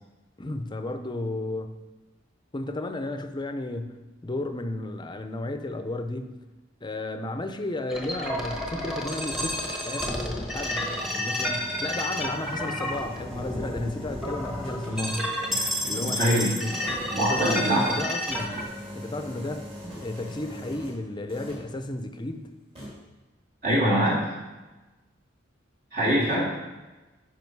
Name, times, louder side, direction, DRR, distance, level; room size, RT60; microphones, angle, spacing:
voice 1, 0.4-1.8 2.5-6.4 6.8-15.2 15.8-16.8 17.2-18.7 18.9-19.7 20.0-22.5 26.3-26.5, left 2 dB, 25° left, 8 dB, 0.6 m, -33 dB
sound 1, 7.9-18.6, left 1 dB, ahead, 1.1 m, -31 dB
sound 2, 10.7-21.0 21.3-21.7 22.7-22.9, equal, 30° right, 3.1 m, -41 dB
voice 2, 16.0-16.5 17.1-17.8 23.6-24.3 25.9-26.5, right 1 dB, 50° right, -7 dB, 2.6 m, -24 dB
10.5 x 5.2 x 4.7 m, 1.1 s
head